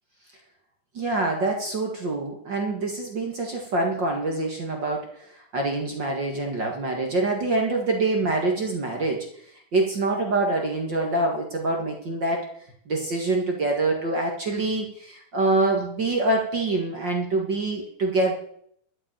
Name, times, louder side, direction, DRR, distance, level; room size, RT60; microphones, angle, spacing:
voice 1, 0.9-9.3 9.7-12.5 12.9-18.3, right 2 dB, 40° right, 1 dB, 1.7 m, -25 dB
12.0 x 8.0 x 8.9 m, 0.66 s
omnidirectional pair, 4.3 m